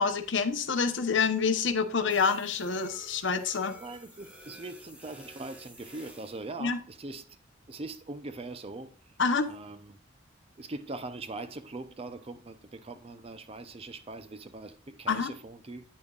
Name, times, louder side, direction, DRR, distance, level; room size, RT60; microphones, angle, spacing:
voice 1, 0.0-3.7 6.6-6.8 9.2-9.5 15.1-15.3, left 5 dB, 65° left, 0.9 m, -27 dB
sound 1, 2.1-6.5, equal, 5° right, 1.3 m, -51 dB
voice 2, 3.7-7.3 7.7-8.9 9.5-10.0 10.6-15.8, right 2 dB, 30° right, 0.6 m, -41 dB
9.5 x 8.7 x 2.4 m
head